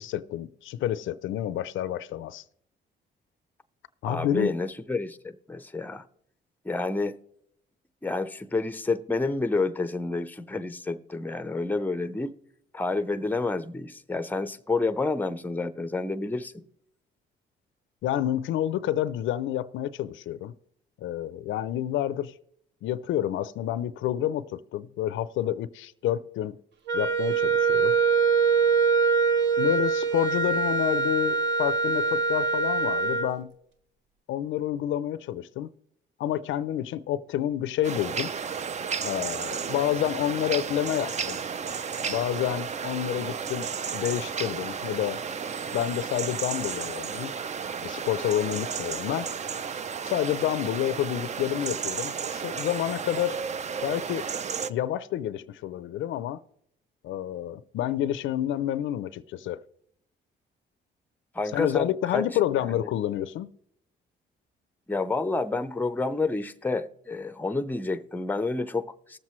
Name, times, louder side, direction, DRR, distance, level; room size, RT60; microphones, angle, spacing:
voice 1, 0.0-2.4 4.0-4.5 18.0-20.5 21.0-22.3 22.8-26.6 26.9-28.0 29.6-33.5 34.3-35.7 36.2-38.3 39.0-41.4 42.1-45.2 45.7-47.3 47.8-49.3 50.0-53.4 53.8-54.2 54.7-56.4 57.0-59.6 61.5-63.5, left 12 dB, 80° left, 0.5 m, -29 dB
voice 2, 4.0-6.1 6.6-7.2 8.0-12.3 12.7-16.6 61.3-62.3 62.8-62.9 64.9-69.2, left 3 dB, 10° left, 0.6 m, -29 dB
Wind instrument woodwind instrument, 26.9-33.3, right 5 dB, 65° right, 1.0 m, -23 dB
sound 1, 37.8-54.7, right 6 dB, 35° right, 0.5 m, -33 dB
19.0 x 7.4 x 3.1 m
cardioid pair, 90°, 20 cm